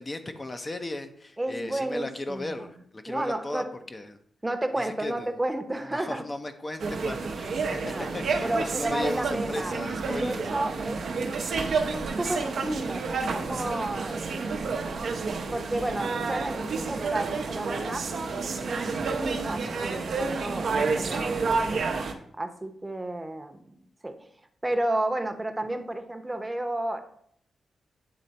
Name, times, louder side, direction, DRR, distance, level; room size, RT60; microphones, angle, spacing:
voice 1, 0.0-3.6 3.9-4.2 4.8-5.3 5.9-8.5 8.8-10.4, left 2 dB, 35° left, 7 dB, 0.6 m, -36 dB
voice 2, 1.4-2.7 3.0-3.7 4.4-6.3 7.8-8.1 8.4-9.8 10.1-11.0 11.9-14.6 15.5-21.9 22.4-23.7 24.0-24.2 24.6-27.0, right 1 dB, 20° right, 7 dB, 0.8 m, -32 dB
sound 1, 6.8-22.1, right 4 dB, 70° right, 0.7 m, -30 dB
8.7 x 3.2 x 4.0 m, 0.67 s
supercardioid pair, 50°, 0 cm